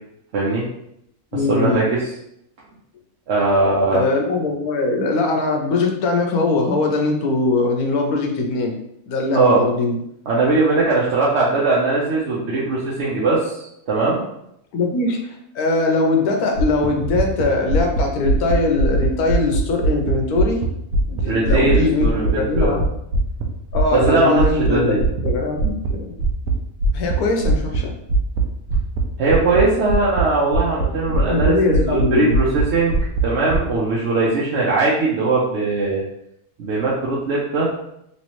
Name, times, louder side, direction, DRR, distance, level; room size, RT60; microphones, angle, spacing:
voice 1, 0.3-0.7 1.5-2.0 3.3-4.0 9.3-9.6 10.3-14.2 21.2-22.8 23.9-25.0 29.2-33.0 33.2-36.0 36.6-37.7, right 3 dB, 60° right, -6 dB, 0.8 m, -20 dB
voice 2, 1.3-1.8 3.9-8.7 9.1-10.0 14.7-20.6 21.1-22.8 23.7-26.2 26.9-27.9 31.1-32.4, left 3 dB, 80° left, 2 dB, 1.2 m, -21 dB
sound 1, 16.6-20.7 20.9-24.1 24.3-24.7 25.0-25.3 25.6-25.9 26.2-26.5 26.8-27.2 27.4-27.8 28.1-28.4 28.7-29.0 29.3-29.6 29.9-30.2 30.5-31.5 31.7-32.0 32.3-32.6 32.9-33.6, right 2 dB, 80° right, 1.1 m, -19 dB
3.1 x 3.1 x 3.0 m, 0.77 s
omnidirectional pair, 1.6 m